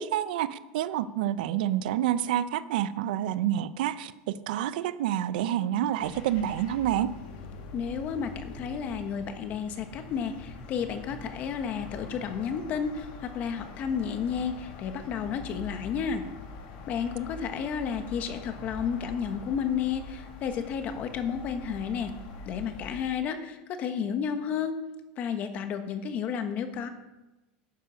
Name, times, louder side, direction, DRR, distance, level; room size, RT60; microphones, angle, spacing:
voice 1, 0.0-7.1, right 11 dB, 85° right, 15 dB, 0.6 m, -28 dB
sound 1, 6.0-23.0, left 3 dB, 65° left, 2.2 m, -44 dB
voice 2, 7.7-16.2 16.9-22.1 22.5-24.8 25.2-26.9, left 7 dB, 35° left, 8 dB, 1.2 m, -32 dB
11.5 x 9.1 x 5.2 m, 1.0 s
supercardioid pair, 165°, 5 cm